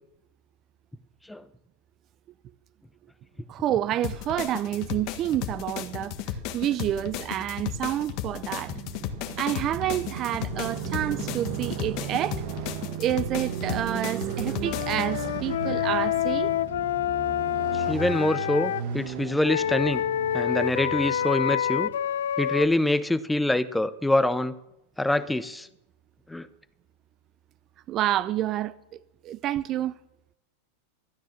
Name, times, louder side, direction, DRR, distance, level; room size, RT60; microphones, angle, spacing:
voice 1, 3.5-8.7 9.4-12.4 13.0-16.5 27.9-29.9, right 12 dB, 40° right, 0.5 m, -29 dB
Motorcycle, 3.9-22.0, right 8 dB, 55° right, 1.1 m, -37 dB
sound 1, 4.0-15.1, left 10 dB, 50° left, 1.4 m, -35 dB
Wind instrument woodwind instrument, 14.6-18.8 19.4-22.7, left 11 dB, 80° left, 0.5 m, -27 dB
voice 2, 17.7-20.0 20.3-21.9 22.4-24.6 25.0-25.7 26.3-26.5, left 1 dB, 5° left, 0.7 m, -25 dB
13.0 x 9.4 x 7.3 m
hypercardioid pair, 115°, 0 cm